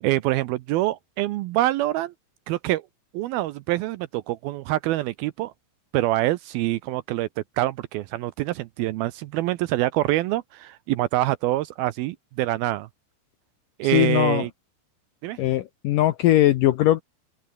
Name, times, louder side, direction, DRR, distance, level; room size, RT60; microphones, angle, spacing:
voice 1, 0.0-2.1 2.5-2.8 3.1-5.5 5.9-12.9 13.8-14.5 15.2-15.4, right 16 dB, 80° right, 2.3 m, -25 dB
voice 2, 13.8-14.5 15.4-17.0, left 14 dB, 75° left, 2.0 m, -20 dB
open air
omnidirectional pair, 4.9 m